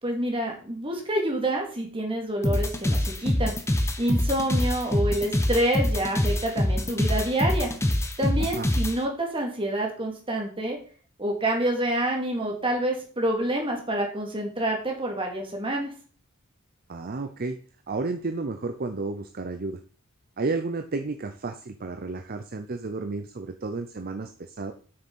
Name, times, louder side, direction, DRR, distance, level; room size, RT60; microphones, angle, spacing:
voice 1, 0.0-3.5 4.0-7.7 8.2-10.8 11.2-15.9, right 1 dB, 25° right, 1 dB, 2.4 m, -27 dB
sound 1, 2.4-9.0, left 1 dB, 15° left, 0.9 m, -24 dB
voice 2, 16.9-19.8 20.4-24.7, right 3 dB, 45° right, 7 dB, 0.7 m, -32 dB
7.8 x 6.4 x 5.5 m, 0.42 s
head